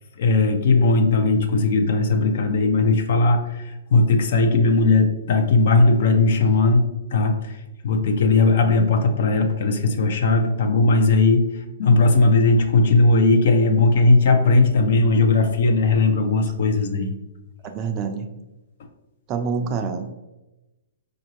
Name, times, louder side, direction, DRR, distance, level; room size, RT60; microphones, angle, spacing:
voice 1, 0.2-7.5 7.8-11.4 11.8-17.2, left 3 dB, 60° left, 6 dB, 0.6 m, -18 dB
voice 2, 17.7-18.3 19.3-20.1, right 5 dB, 30° right, 6 dB, 0.4 m, -26 dB
4.8 x 2.6 x 3.0 m, 1.0 s
hypercardioid pair, 130°, 0 cm